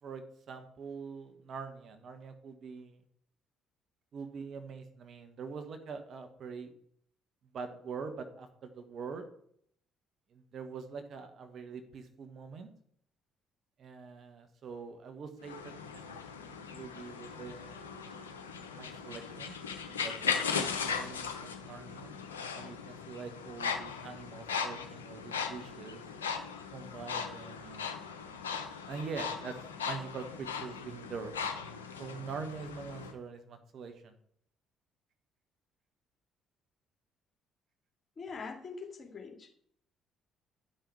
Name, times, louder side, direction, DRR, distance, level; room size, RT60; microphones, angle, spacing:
voice 1, 0.0-3.0 4.1-6.7 7.5-9.3 10.3-12.7 13.8-16.2 16.5-17.9 18.7-22.1 22.5-26.0 26.7-28.2 28.9-29.6 29.8-31.3 32.0-34.1, right 5 dB, 55° right, 7 dB, 1.3 m, -44 dB
sound 1, 15.4-33.1, left 6 dB, 90° left, 0.7 m, -38 dB
voice 2, 38.2-39.5, left 5 dB, 40° left, 2 dB, 2.3 m, -43 dB
11.0 x 5.5 x 4.7 m, 0.66 s
hypercardioid pair, 50°, 0 cm